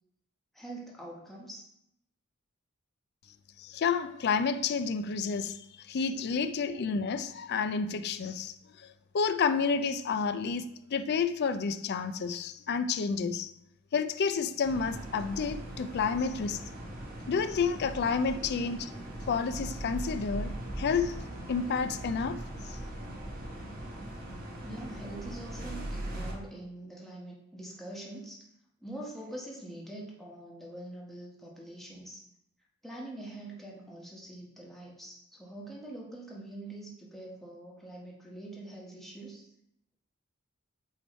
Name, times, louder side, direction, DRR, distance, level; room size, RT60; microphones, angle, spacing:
voice 1, 0.5-1.7 24.6-28.4 28.8-32.2 32.8-39.5, right 1 dB, ahead, 1.2 m, -44 dB
voice 2, 3.6-13.5 13.9-16.6 17.3-18.9 19.3-21.2 21.5-22.4 22.7-22.8, left 5 dB, 50° left, 0.4 m, -30 dB
sound 1, 14.6-26.3, right 1 dB, 45° right, 1.2 m, -40 dB
8.0 x 3.1 x 4.3 m
head